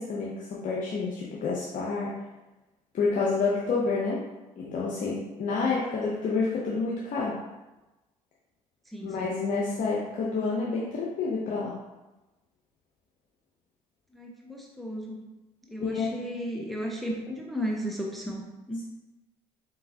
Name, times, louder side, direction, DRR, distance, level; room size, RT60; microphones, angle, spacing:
voice 1, 0.0-2.2 2.9-4.2 4.6-7.4 9.0-11.8 15.8-16.1, left 4 dB, 50° left, -5 dB, 0.8 m, -29 dB
voice 2, 8.9-9.3 14.1-15.2 15.7-18.8, equal, ahead, -1 dB, 0.7 m, -35 dB
4.1 x 3.8 x 2.8 m, 1.1 s
hypercardioid pair, 55°, 17 cm